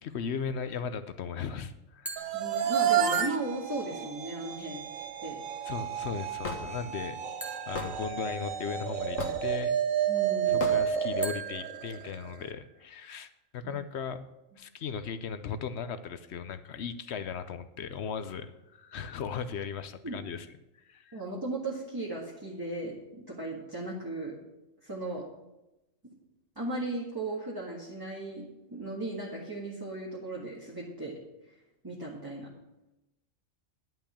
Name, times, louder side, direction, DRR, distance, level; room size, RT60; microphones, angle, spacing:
voice 1, 0.0-2.3 4.6-4.7 5.7-7.2 7.7-9.8 10.4-14.3 14.6-20.5 20.9-21.2, left 6 dB, 65° left, 11 dB, 0.9 m, -37 dB
sound 1, 2.1-3.4 7.4-8.9 11.2-12.9, right 3 dB, ahead, 1.2 m, -44 dB
sound 2, 2.2-12.3, right 9 dB, 85° right, 1.2 m, -31 dB
voice 2, 2.3-4.8 5.2-5.4 10.1-10.6 13.6-13.7 20.0-20.2 21.1-24.4 24.8-25.2 26.6-31.1 31.8-32.5, right 2 dB, 15° right, -4 dB, 1.8 m, -36 dB
Hammer / Wood, 6.4-6.6 7.7-7.9 9.2-9.5 10.6-10.8, left 4 dB, 85° left, 1.8 m, -33 dB
11.0 x 5.7 x 8.4 m, 0.95 s
omnidirectional pair, 1.3 m